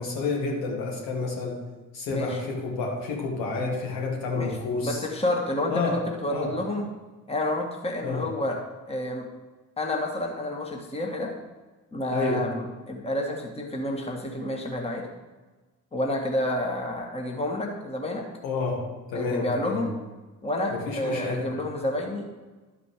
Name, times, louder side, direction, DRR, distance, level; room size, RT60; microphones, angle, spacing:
voice 1, 0.0-1.6 1.9-5.0 5.7-6.0 6.3-6.5 8.0-8.2 12.1-12.5 18.4-18.8 19.1-19.8 20.7-21.6, left 3 dB, 65° left, -1 dB, 2.0 m, -29 dB
voice 2, 2.1-2.4 4.3-4.5 4.8-6.9 7.3-8.6 8.9-9.2 9.8-11.3 11.9-15.1 15.9-18.3 19.1-19.9 20.4-22.2, left 1 dB, 15° left, 1 dB, 1.6 m, -29 dB
12.0 x 5.0 x 5.0 m, 1.2 s
figure-of-eight pair, 45°, 44 cm